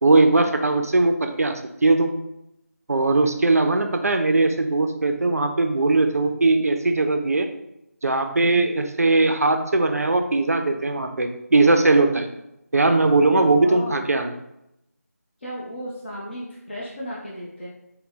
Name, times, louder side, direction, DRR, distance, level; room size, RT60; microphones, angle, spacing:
voice 1, 0.0-2.1 2.9-7.5 8.0-12.3 12.7-14.3, right 2 dB, 65° right, 6 dB, 0.5 m, -19 dB
voice 2, 13.3-14.1 15.4-17.7, equal, 40° left, -7 dB, 0.8 m, -34 dB
4.0 x 2.1 x 3.7 m, 0.84 s
figure-of-eight pair, 165°, 9 cm